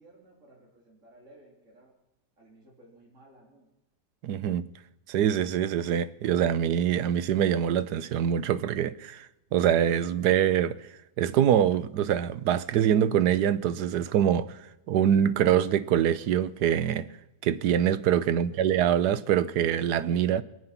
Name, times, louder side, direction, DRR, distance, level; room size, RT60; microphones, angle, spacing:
voice 1, 0.0-1.9 2.4-3.7 18.2-18.6, right 1 dB, 45° right, 3.5 m, -56 dB
voice 2, 4.2-4.7 5.1-9.3 9.5-10.8 11.2-14.5 14.9-17.1 17.4-20.4, right 10 dB, 70° right, 1.2 m, -24 dB
23.5 x 8.0 x 5.7 m
omnidirectional pair, 1.9 m